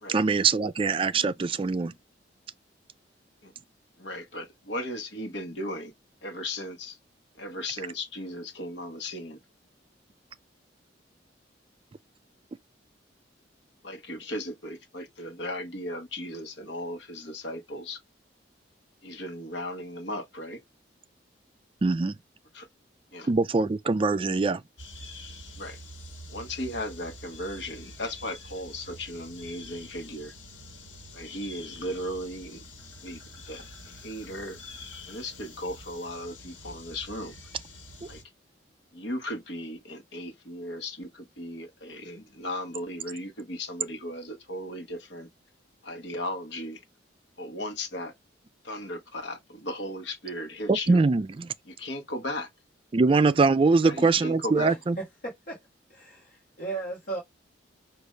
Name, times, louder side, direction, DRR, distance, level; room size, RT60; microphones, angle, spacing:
voice 1, 0.1-1.9 21.8-22.1 23.3-24.6 50.7-51.5 52.9-55.0, right 4 dB, 30° right, 0.3 m, -23 dB
voice 2, 4.0-5.9 6.2-7.0 7.4-9.4 13.8-18.0 19.0-20.6 22.5-22.7 23.1-23.3 25.6-25.8 26.3-30.3 31.1-32.6 33.0-34.6 35.1-37.3 38.1-38.2 38.9-45.3 45.8-46.8 47.4-48.1 48.6-51.0 51.7-52.5 53.8-54.8, left 1 dB, 70° left, 1.2 m, -36 dB
sound 1, 24.8-38.2, left 2 dB, 90° left, 1.4 m, -46 dB
voice 3, 54.5-55.6 55.9-57.2, right 3 dB, 50° left, 1.4 m, -36 dB
5.1 x 2.5 x 3.2 m
head